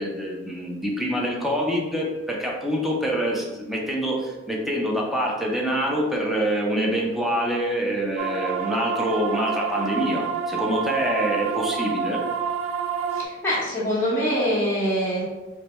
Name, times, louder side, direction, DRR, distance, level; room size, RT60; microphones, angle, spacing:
voice 1, 0.0-12.2, equal, ahead, -2 dB, 0.6 m, -26 dB
sound 1, 8.2-13.2, right 6 dB, 90° right, 0.3 m, -28 dB
voice 2, 13.1-15.2, equal, 15° left, -9 dB, 1.1 m, -24 dB
3.2 x 2.2 x 4.1 m, 1.1 s
head